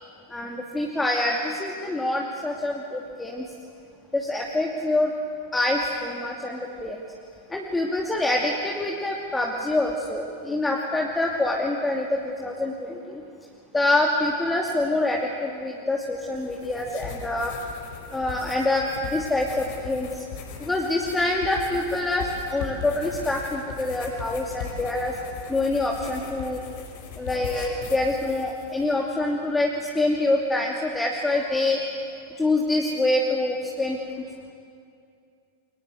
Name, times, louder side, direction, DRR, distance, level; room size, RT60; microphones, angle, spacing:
voice 1, 0.3-3.4 4.1-5.1 5.5-7.0 7.5-13.2 13.7-17.5 18.1-18.8 19.1-20.2 20.6-25.1 25.5-26.6 27.2-31.8 32.4-34.0, left 2 dB, 10° left, -1 dB, 2.6 m, -25 dB
sound 1, 16.2-28.9, left 5 dB, 50° left, 5.3 m, -39 dB
29.5 x 23.5 x 8.0 m, 2.4 s
figure-of-eight pair, 90°, 0 cm